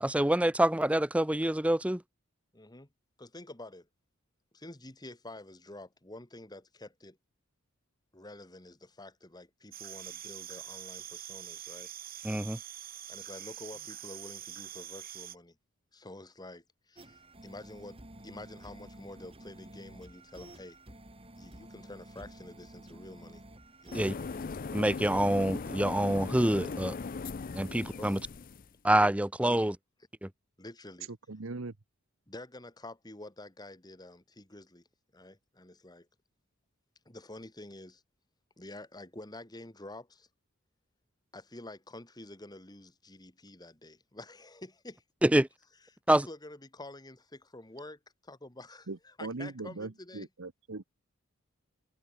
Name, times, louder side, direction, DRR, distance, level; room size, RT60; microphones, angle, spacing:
voice 1, 0.0-2.0 12.2-12.6 23.9-24.1 24.7-26.9 27.5-28.2 28.8-29.7 30.2-30.3 45.2-45.5 46.1-46.3, right 1 dB, 5° right, 0.6 m, -26 dB
voice 2, 2.5-2.9 3.2-3.9 4.5-7.2 8.1-11.9 13.1-15.6 15.9-20.8 21.4-23.4 23.8-24.1 28.0-28.2 29.4-29.7 30.6-31.1 32.3-34.8 35.1-36.1 37.1-38.0 38.6-40.3 41.3-45.0 46.1-50.3, left 1 dB, 20° left, 2.1 m, -48 dB
sound 1, 9.7-15.4, right 11 dB, 45° right, 4.9 m, -44 dB
sound 2, 17.0-24.4, right 1 dB, 25° right, 3.5 m, -51 dB
sound 3, 23.9-28.7, left 4 dB, 40° left, 0.5 m, -39 dB
voice 3, 31.1-31.7 48.9-50.8, right 3 dB, 70° right, 1.0 m, -40 dB
head